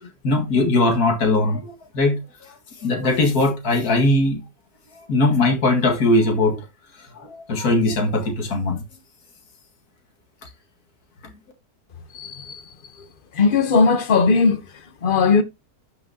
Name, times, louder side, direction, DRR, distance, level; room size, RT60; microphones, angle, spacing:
voice 1, 0.0-2.5 2.8-4.4 5.1-6.6 7.2-8.8, left 2 dB, 60° left, 2.4 m, -20 dB
voice 2, 12.1-12.6 13.3-14.6 15.0-15.4, left 4 dB, 40° left, 0.9 m, -18 dB
12.5 x 6.0 x 2.8 m
omnidirectional pair, 1.8 m